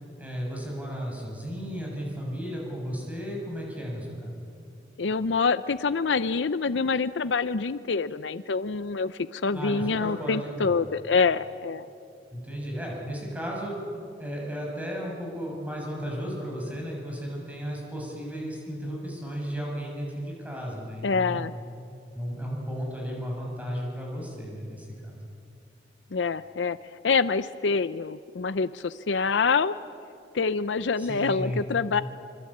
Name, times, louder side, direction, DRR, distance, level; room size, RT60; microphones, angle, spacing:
voice 1, 0.2-4.3 9.5-10.7 12.3-13.8 14.2-21.4 22.1-25.2 31.0-31.6, equal, 10° right, -2 dB, 6.7 m, -34 dB
voice 2, 5.0-11.9 21.0-21.5 26.1-26.8 27.0-29.7 30.3-32.0, left 4 dB, 85° left, 14 dB, 0.6 m, -26 dB
26.0 x 25.0 x 8.7 m, 2.5 s
head